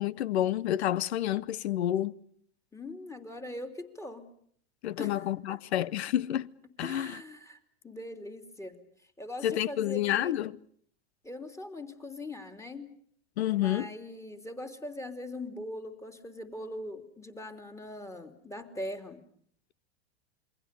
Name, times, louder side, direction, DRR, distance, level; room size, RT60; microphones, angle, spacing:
voice 1, 0.0-2.1 4.8-6.5 6.8-7.2 9.4-10.6 13.4-13.9, left 12 dB, 75° left, 1.0 m, -29 dB
voice 2, 2.7-4.3 5.0-5.2 5.5-5.6 6.8-7.6 7.8-8.8 9.2-10.3 11.2-12.9 13.5-19.2, left 1 dB, 10° left, 3.1 m, -41 dB
27.5 x 22.5 x 6.8 m
hypercardioid pair, 100°, 33 cm